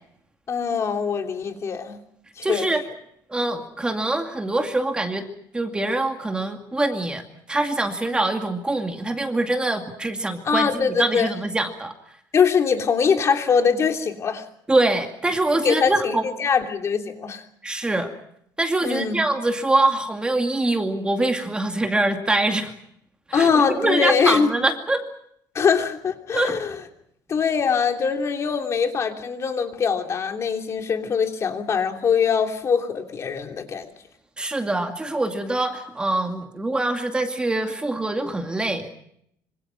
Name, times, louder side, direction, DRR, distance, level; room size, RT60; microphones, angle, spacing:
voice 1, 0.5-2.0 2.4-2.7 10.4-11.3 12.3-14.4 15.6-17.4 18.8-19.2 23.3-24.5 25.5-26.7 27.3-33.9, left 6 dB, 35° left, 4 dB, 3.1 m, -22 dB
voice 2, 2.4-2.8 3.3-5.3 5.5-11.9 14.7-16.3 17.6-18.1 18.6-22.7 23.3-25.0 26.3-26.6 34.4-38.9, right 2 dB, 10° right, 5 dB, 2.2 m, -24 dB
26.0 x 26.0 x 5.9 m, 0.71 s
cardioid pair, 145°, 8 cm